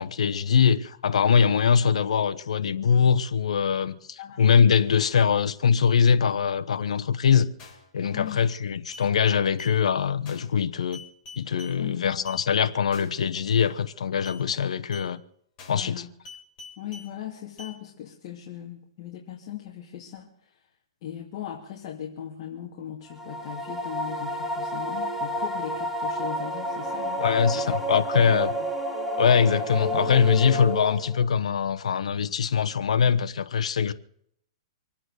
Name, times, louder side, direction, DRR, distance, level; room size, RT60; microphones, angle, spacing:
voice 1, 0.0-7.5 7.9-11.0 11.4-15.2 15.7-16.0 27.2-28.5 29.2-33.9, left 7 dB, 80° left, 1.0 m, -22 dB
sound 1, 7.6-7.9 8.3-8.6 8.9-9.1 9.6-9.8 10.3-10.6 10.9-11.8 12.3-12.4 12.9-13.2 13.6-13.9 14.2-14.4 14.9-15.1 15.6-15.9 16.2-17.1 17.6-17.7, left 3 dB, 25° left, 4.5 m, -45 dB
voice 2, 8.1-8.4 11.7-12.3 15.7-16.1 16.8-20.7 21.0-27.8 28.1-28.7, left 10 dB, 40° left, 2.5 m, -39 dB
sound 2, 23.1-31.3, equal, ahead, 1.7 m, -30 dB
24.5 x 8.9 x 6.6 m
hypercardioid pair, 155°, 3 cm